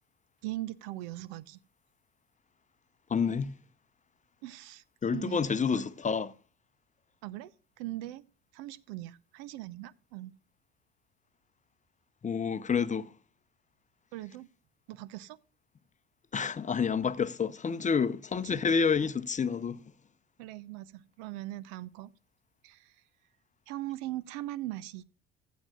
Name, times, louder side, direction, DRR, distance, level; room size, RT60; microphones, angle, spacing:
voice 1, 0.4-1.6 4.4-4.8 5.1-5.4 5.7-5.8 7.2-7.5 7.8-8.2 8.5-10.3 14.1-14.5 14.9-15.4 20.4-22.1 22.6-22.9 23.7-25.0, right 16 dB, 60° right, 0.7 m, -40 dB
voice 2, 3.1-3.5 5.0-6.3 12.2-13.1 16.3-19.8, left 6 dB, 20° left, 0.8 m, -29 dB
16.0 x 10.5 x 2.4 m
figure-of-eight pair, 60°, 34 cm